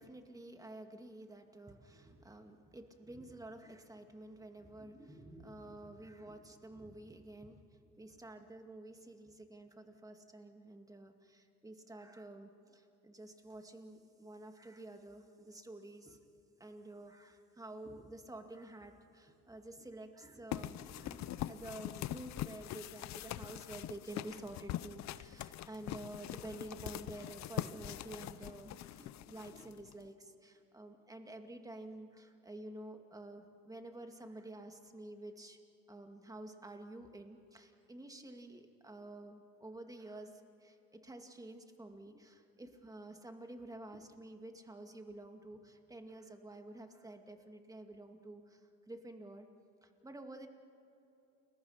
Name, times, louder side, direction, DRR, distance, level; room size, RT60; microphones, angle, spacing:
voice 1, 0.0-16.2 16.6-35.6 35.9-49.5 49.8-50.5, right 1 dB, 10° right, 5 dB, 2.3 m, -50 dB
sound 1, 20.5-30.0, left 13 dB, 55° left, 0.7 m, -43 dB
30.0 x 22.0 x 5.8 m, 2.9 s
cardioid pair, 110°, 32 cm